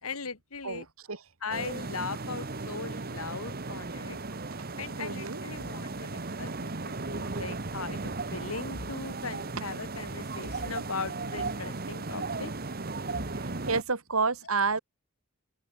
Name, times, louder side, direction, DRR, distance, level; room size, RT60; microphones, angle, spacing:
voice 1, 0.0-0.9 1.4-4.2 4.8-6.1 6.4-12.5, left 4 dB, 75° left, 2.0 m, -39 dB
voice 2, 0.6-1.2 5.0-5.4 6.5-6.6 13.4-14.8, right 4 dB, 75° right, 2.3 m, -30 dB
sound 1, 1.5-13.8, right 3 dB, 45° right, 1.5 m, -36 dB
open air
head